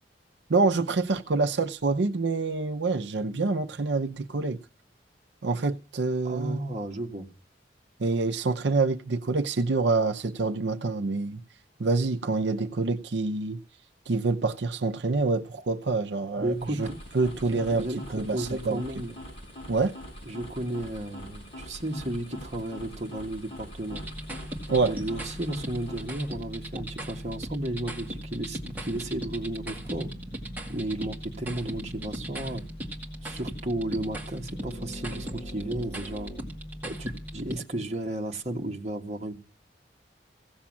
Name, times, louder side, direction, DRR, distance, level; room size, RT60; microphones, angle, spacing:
voice 1, 0.5-4.6 5.4-6.7 8.0-11.4 11.8-13.6 14.1-16.9 17.1-17.8 18.1-18.8 19.7-19.9 24.7-24.9, right 3 dB, 80° right, 0.6 m, -26 dB
voice 2, 6.2-7.3 16.4-16.9 17.5-19.2 20.2-24.0 24.8-30.1 30.7-32.6 33.2-36.3 36.8-39.4, right 1 dB, 35° right, 1.5 m, -33 dB
sound 1, 16.4-26.3, equal, 30° left, 7.0 m, -44 dB
sound 2, 23.9-37.6, equal, 10° right, 2.1 m, -38 dB
16.0 x 7.2 x 7.3 m
head